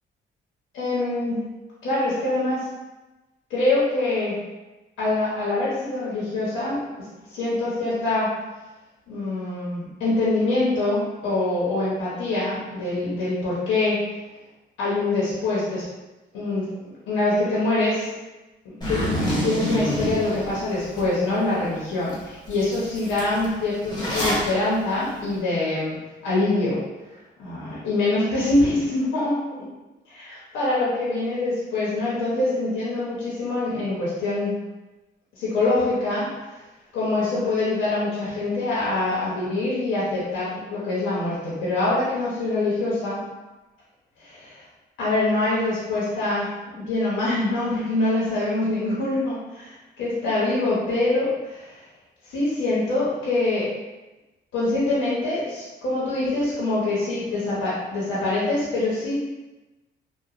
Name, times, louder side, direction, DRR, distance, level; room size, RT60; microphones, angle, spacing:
voice 1, 0.7-1.4 1.8-2.6 3.5-4.4 5.0-6.8 7.3-8.3 9.1-14.0 14.8-15.8 16.3-16.7 17.1-18.1 18.6-19.0 19.4-26.0 26.2-26.8 27.4-29.3 30.1-34.6 35.3-36.3 36.5-36.6 36.9-43.2 44.2-44.6 45.0-51.8 52.2-53.7 54.5-59.2, left 2 dB, 80° left, -8 dB, 0.9 m, -24 dB
Zipper (clothing), 18.8-21.0 21.5-21.6 22.1-22.2 22.5-24.5, equal, 20° left, 1.0 m, -27 dB
2.9 x 2.2 x 2.5 m, 1.1 s
cardioid pair, 90°, 20 cm